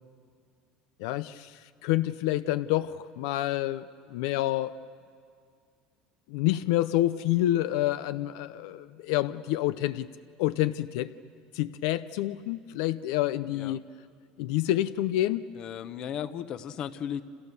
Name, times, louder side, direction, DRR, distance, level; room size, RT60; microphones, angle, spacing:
voice 1, 1.0-4.7 6.3-10.1 10.4-11.1 11.5-13.8 14.4-15.4, left 14 dB, 80° left, 13 dB, 0.6 m, -28 dB
voice 2, 15.6-17.2, left 9 dB, 40° left, 13 dB, 1.0 m, -35 dB
29.5 x 28.0 x 7.0 m, 2.2 s
cardioid pair, 150°, 2 cm